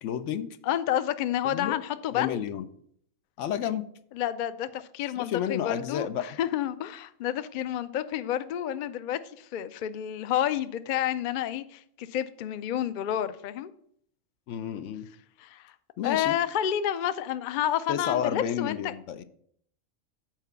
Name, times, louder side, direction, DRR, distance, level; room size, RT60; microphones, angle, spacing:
voice 1, 0.0-0.5 1.4-1.8 2.1-2.6 3.4-3.9 5.2-6.3 14.5-15.1 16.0-16.3 17.9-19.2, left 9 dB, 70° left, 0.9 m, -31 dB
voice 2, 0.6-2.5 4.2-13.7 15.4-15.7 16.0-18.9, left 11 dB, 85° left, 0.4 m, -30 dB
7.4 x 4.6 x 6.7 m
omnidirectional pair, 1.4 m